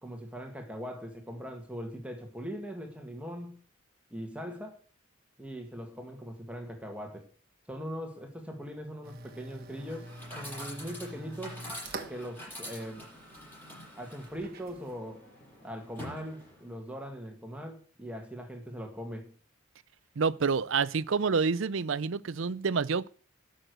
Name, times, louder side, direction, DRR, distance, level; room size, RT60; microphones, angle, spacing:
voice 1, 0.0-3.6 4.1-4.8 5.4-7.3 7.7-11.6 12.1-13.1 14.0-15.2 15.6-19.3, equal, 5° right, 1.8 m, -41 dB
sound 1, 9.0-15.0, right 2 dB, 45° right, 1.3 m, -46 dB
Chatter / Coin (dropping), 9.7-16.8, equal, 10° left, 6.5 m, -46 dB
voice 2, 20.2-23.1, right 5 dB, 65° right, 0.5 m, -28 dB
12.0 x 6.4 x 8.0 m
head